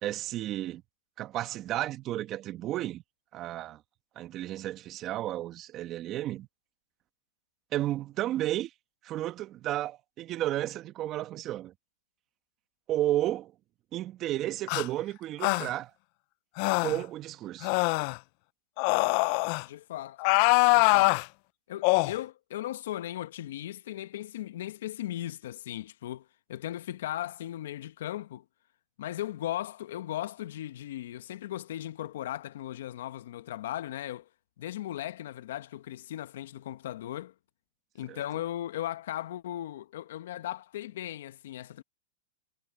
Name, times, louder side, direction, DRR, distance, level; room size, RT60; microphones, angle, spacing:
voice 1, 0.0-0.8 1.2-3.0 3.3-3.8 4.2-6.5 7.7-8.7 9.0-11.7 12.9-13.5 13.9-15.9 16.8-17.7 38.1-38.2, right 14 dB, 35° right, 1.7 m, -32 dB
sound 1, 14.7-14.9 15.4-15.7 16.6-17.0 17.6-18.2 18.8-19.6 20.2-21.2 21.8-22.1, left 28 dB, 50° left, 0.5 m, -24 dB
voice 2, 19.6-20.2 20.7-21.2 21.7-28.4 29.0-34.3 34.6-37.3 37.9-41.8, left 13 dB, 70° left, 1.3 m, -37 dB
hypercardioid pair, 120°, 0 cm